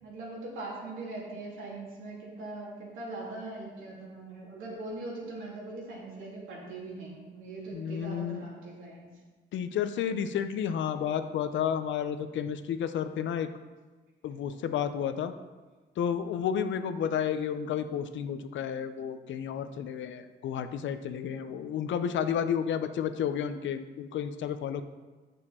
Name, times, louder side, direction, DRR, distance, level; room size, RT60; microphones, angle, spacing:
voice 1, 0.0-9.1, right 2 dB, 85° right, -4 dB, 2.8 m, -41 dB
voice 2, 7.7-8.4 9.5-13.5 14.2-15.3 16.0-24.8, left 8 dB, 70° left, 10 dB, 0.6 m, -31 dB
8.8 x 6.6 x 4.3 m, 1.3 s
cardioid pair, 90°, 20 cm